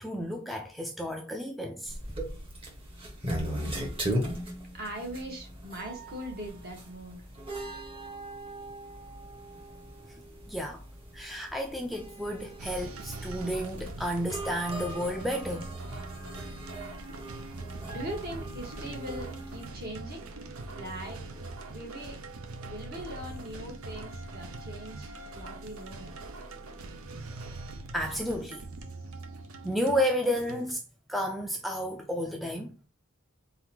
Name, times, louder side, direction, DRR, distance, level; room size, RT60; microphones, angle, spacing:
voice 1, 0.0-2.0 10.5-10.8 11.1-15.7 27.9-28.6 29.6-30.8 31.1-32.7, equal, ahead, 0.4 m, -31 dB
sound 1, 1.9-19.7, right 1 dB, 25° right, 1.2 m, -39 dB
voice 2, 4.7-7.2 17.9-20.3 20.7-22.2 22.6-26.1, equal, 45° right, 1.4 m, -41 dB
sound 2, 12.6-30.7, right 2 dB, 75° right, 0.7 m, -42 dB
4.1 x 3.9 x 2.9 m
head